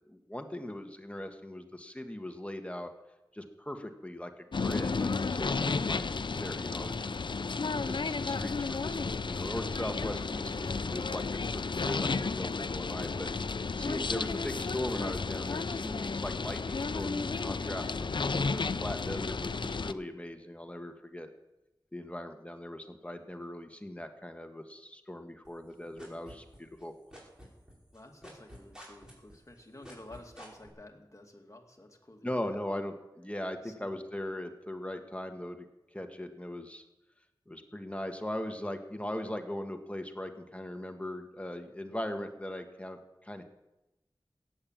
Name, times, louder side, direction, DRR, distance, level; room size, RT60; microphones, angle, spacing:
voice 1, 0.1-2.9 3.3-7.2 7.8-9.0 9.2-13.3 13.7-21.3 21.9-26.9 32.2-35.6 35.9-36.8 37.5-43.4, left 1 dB, 15° left, 5 dB, 1.5 m, -39 dB
sound 1, 4.5-19.9, left 4 dB, 70° left, 0.5 m, -33 dB
sound 2, 25.4-26.8 27.1-30.7, equal, 10° right, 5.5 m, -49 dB
voice 2, 27.9-32.9 33.6-34.0, left 1 dB, 40° left, 2 dB, 2.3 m, -52 dB
16.5 x 8.9 x 7.4 m, 0.96 s
wide cardioid pair, 60°, 8 cm